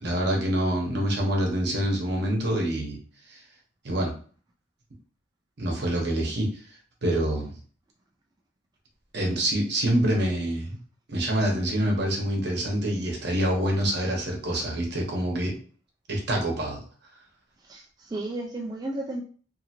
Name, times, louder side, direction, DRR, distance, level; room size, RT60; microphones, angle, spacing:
voice 1, 0.0-3.0 3.3-3.4 3.8-4.1 5.6-6.5 7.0-7.5 9.1-10.8 11.1-15.5 16.1-16.8, right 1 dB, 65° right, 0 dB, 0.9 m, -26 dB
voice 2, 17.6-19.2, right 2 dB, 20° right, 0 dB, 0.3 m, -33 dB
2.7 x 2.5 x 2.8 m, 0.42 s
head